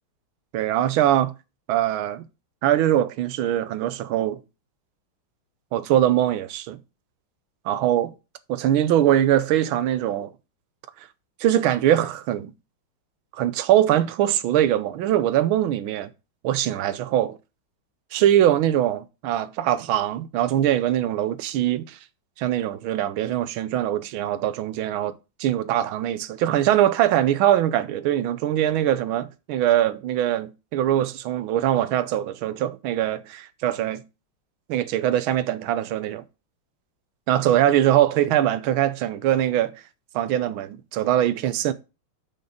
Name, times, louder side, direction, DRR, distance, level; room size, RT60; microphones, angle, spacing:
voice 1, 0.5-1.3 1.7-2.2 2.6-4.4 5.7-6.8 7.6-8.1 8.5-10.3 11.4-12.5 13.3-16.1 16.4-17.4 18.1-22.0 22.4-34.0 34.7-36.2 37.3-39.7 40.1-41.7, right 12 dB, 80° right, 1.5 m, -22 dB
6.5 x 5.2 x 6.3 m
omnidirectional pair, 2.3 m